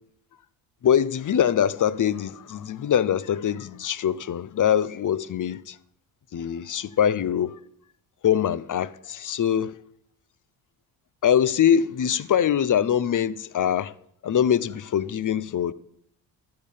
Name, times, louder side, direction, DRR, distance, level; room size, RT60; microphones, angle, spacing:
voice 1, 0.8-5.8 6.3-7.6 8.2-9.8 11.2-13.9 14.2-15.7, left 9 dB, 40° left, 0.8 m, -23 dB
12.5 x 6.8 x 8.4 m
supercardioid pair, 65°, 48 cm